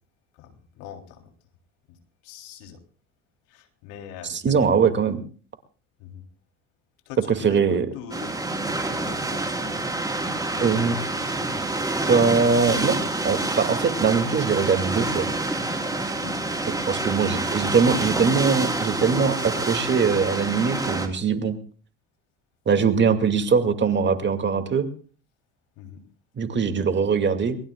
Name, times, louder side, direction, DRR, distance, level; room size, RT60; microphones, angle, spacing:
voice 1, 0.4-1.2 1.9-2.0 2.2-2.8 3.5-4.7 6.0-6.3 7.1-9.8 10.2-11.6 16.2-16.4 16.8-17.1 25.8-26.0, left 8 dB, 70° left, 4 dB, 3.6 m, -42 dB
voice 2, 4.2-5.2 7.3-7.9 10.6-11.0 12.1-13.0 13.2-15.3 16.7-21.6 22.7-24.9 26.4-27.6, right 5 dB, 35° right, 7 dB, 2.4 m, -22 dB
sound 1, 8.1-21.1, right 2 dB, 10° right, 3.7 m, -27 dB
22.5 x 20.5 x 2.4 m, 0.41 s
hypercardioid pair, 80°, 33 cm